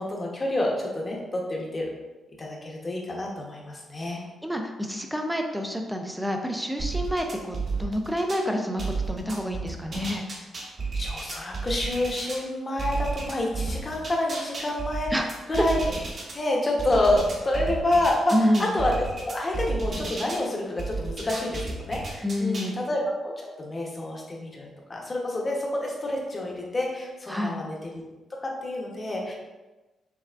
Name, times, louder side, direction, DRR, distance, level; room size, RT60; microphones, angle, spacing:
voice 1, 0.0-1.9 2.4-4.2 10.9-15.9 16.3-28.0 28.4-29.3, left 1 dB, 25° left, -1 dB, 0.8 m, -28 dB
voice 2, 4.0-10.3 15.1-15.3 18.3-18.7 22.2-22.8 27.3-27.6, equal, ahead, 3 dB, 0.4 m, -28 dB
sound 1, 6.8-8.4 8.8-12.4 12.8-16.3 16.8-20.4 20.8-22.7, right 3 dB, 40° right, 0.9 m, -32 dB
5.6 x 3.4 x 2.4 m, 1.1 s
cardioid pair, 150°, 0 cm